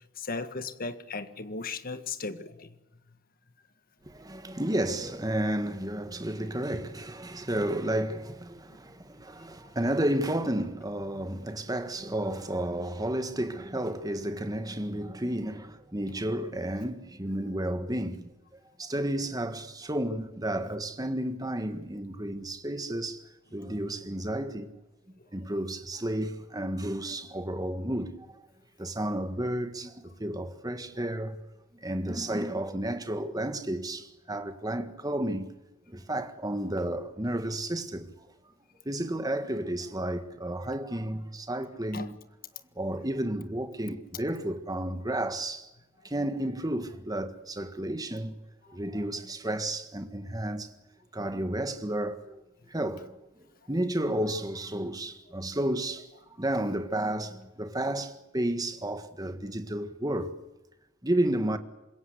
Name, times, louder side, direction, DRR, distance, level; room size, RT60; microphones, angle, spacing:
voice 1, 0.2-2.8 25.2-25.3 41.9-42.1, left 4 dB, 40° left, 1.7 m, -36 dB
voice 2, 4.1-18.3 18.8-23.2 23.5-24.7 25.3-28.3 28.8-31.4 31.8-35.5 35.9-38.1 38.8-42.2 42.7-45.7 46.0-48.4 48.7-50.7 51.1-52.4 52.7-53.2 53.7-56.1 56.4-60.4 61.0-61.6, right 1 dB, 15° right, 1.6 m, -32 dB
26.0 x 22.0 x 8.2 m
head